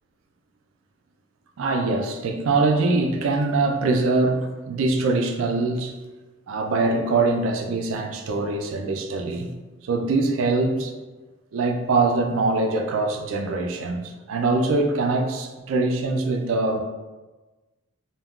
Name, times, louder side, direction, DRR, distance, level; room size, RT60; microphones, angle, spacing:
voice 1, 1.6-6.0 6.5-9.5 9.8-10.9 11.5-16.8, right 3 dB, 70° right, 4 dB, 0.4 m, -23 dB
2.3 x 2.2 x 3.5 m, 1.2 s
head